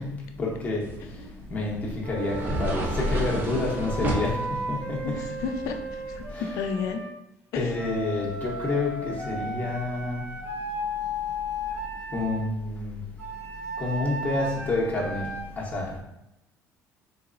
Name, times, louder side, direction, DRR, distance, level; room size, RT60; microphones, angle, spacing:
voice 1, 0.0-5.3 6.3-6.5 7.6-10.4 10.7-11.3 11.8-13.3 13.8-16.0, left 2 dB, 30° left, -3 dB, 0.7 m, -29 dB
sound 1, 0.8-6.3, equal, 35° right, 0.5 m, -32 dB
Wind instrument woodwind instrument, 2.0-7.1 7.7-12.4 13.2-15.4, equal, 60° right, 1.1 m, -35 dB
voice 2, 5.0-7.1 7.5-7.7, left 6 dB, 70° left, 6 dB, 0.4 m, -32 dB
3.9 x 2.9 x 2.5 m, 0.89 s
cardioid pair, 140°, 6 cm